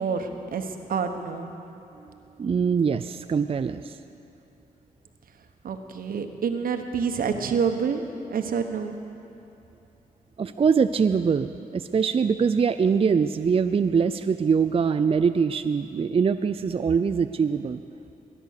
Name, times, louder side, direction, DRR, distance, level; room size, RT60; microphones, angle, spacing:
voice 1, 0.0-1.5 5.6-8.9, right 6 dB, 80° right, 6 dB, 1.2 m, -28 dB
voice 2, 2.0-4.0 10.4-17.8, right 6 dB, 40° right, 9 dB, 0.4 m, -23 dB
21.5 x 10.0 x 6.6 m, 2.8 s
cardioid pair, 70°, 15 cm